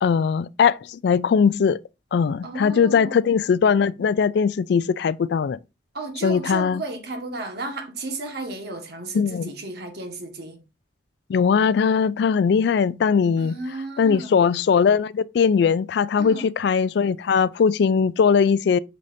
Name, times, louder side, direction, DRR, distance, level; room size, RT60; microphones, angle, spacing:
voice 1, 0.0-1.8 2.1-5.6 6.2-6.8 9.1-9.5 11.3-13.5 14.0-18.8, left 6 dB, 60° left, 0.3 m, -20 dB
voice 2, 2.4-3.2 5.9-10.6 13.4-14.4 16.2-16.5, right 2 dB, 55° right, 1.4 m, -33 dB
8.2 x 5.6 x 2.6 m
head